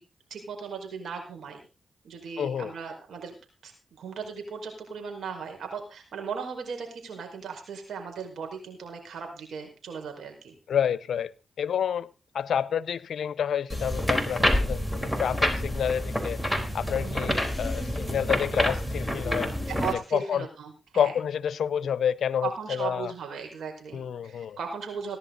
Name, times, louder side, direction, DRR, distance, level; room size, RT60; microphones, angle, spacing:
voice 1, 0.3-1.6 2.0-3.4 3.6-10.5 17.0-17.3 19.7-21.1 22.4-25.2, right 6 dB, 85° right, 5.0 m, -37 dB
voice 2, 2.4-2.7 10.7-11.3 11.6-16.4 16.7-19.5 20.1-20.5 20.9-23.1 23.9-24.6, left 8 dB, 80° left, 0.7 m, -29 dB
sound 1, 13.7-19.9, equal, 5° right, 3.9 m, -28 dB
18.0 x 11.0 x 4.0 m
cardioid pair, 55°, 0 cm